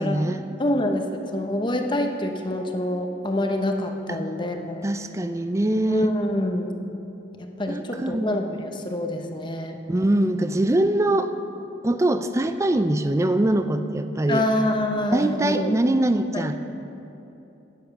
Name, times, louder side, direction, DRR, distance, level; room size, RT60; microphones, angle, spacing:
voice 1, 0.0-0.4 4.1-4.2 4.8-6.1 7.7-8.4 9.9-11.3 11.8-14.4 15.1-16.6, right 1 dB, 15° right, 9 dB, 0.4 m, -23 dB
voice 2, 0.6-4.9 5.9-6.8 7.4-9.8 14.3-15.7 16.3-16.5, left 1 dB, 25° left, 4 dB, 0.8 m, -26 dB
10.5 x 9.1 x 5.8 m, 2.9 s
head